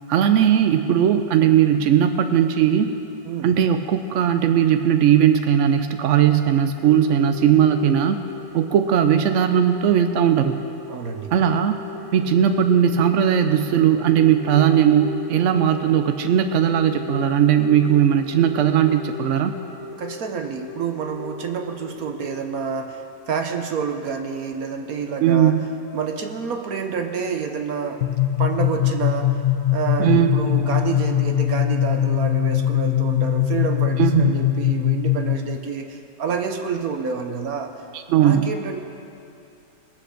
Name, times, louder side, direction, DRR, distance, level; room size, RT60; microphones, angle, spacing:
voice 1, 0.1-2.9 3.4-8.2 8.5-10.6 11.3-11.7 12.1-19.5 25.2-25.6 30.0-30.4 34.0-34.4 37.9-38.5, right 9 dB, 75° right, 8 dB, 0.6 m, -18 dB
Telephone, 6.8-23.0, left 6 dB, 70° left, 1.7 m, -37 dB
voice 2, 10.9-11.3 20.0-25.6 25.9-28.0 28.4-29.4 29.7-37.7 38.2-38.8, right 6 dB, 60° right, 5 dB, 1.2 m, -28 dB
sound 1, 28.0-35.6, left 12 dB, 90° left, 0.7 m, -21 dB
20.5 x 7.7 x 6.6 m, 2.6 s
omnidirectional pair, 1.9 m